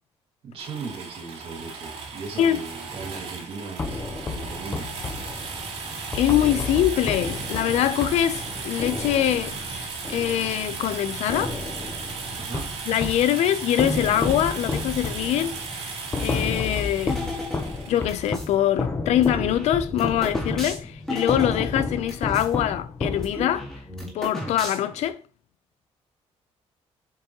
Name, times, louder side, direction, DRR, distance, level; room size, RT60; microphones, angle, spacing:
voice 1, 0.4-4.0 4.3-5.1 12.4-12.7, right 4 dB, 60° right, 2.1 m, -37 dB
sound 1, 0.6-18.3, right 4 dB, 85° right, 3.2 m, -35 dB
sound 2, 3.8-10.9 11.3-13.3 13.8-23.7, left 3 dB, 20° left, 0.8 m, -31 dB
voice 2, 6.1-11.6 12.9-17.2 17.9-23.7 24.1-25.2, left 11 dB, 85° left, 0.6 m, -24 dB
sound 3, 17.1-18.5 19.1-22.5 22.8-22.9 23.1-25.1, left 1 dB, 5° left, 1.8 m, -35 dB
7.7 x 5.2 x 3.0 m
cardioid pair, 170°, 11 cm